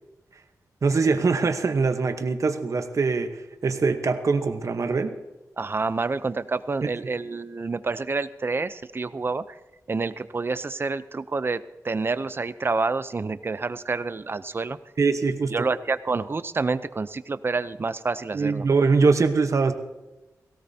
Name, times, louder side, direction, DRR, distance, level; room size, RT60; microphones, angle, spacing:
voice 1, 0.8-5.2 7.0-7.1 15.0-15.7 18.3-19.7, right 4 dB, 55° right, 8 dB, 1.0 m, -23 dB
voice 2, 5.6-9.6 9.9-14.8 15.5-18.7, right 4 dB, 35° right, 14 dB, 0.6 m, -28 dB
18.0 x 17.0 x 2.8 m, 1.0 s
wide cardioid pair, 85°, 6 cm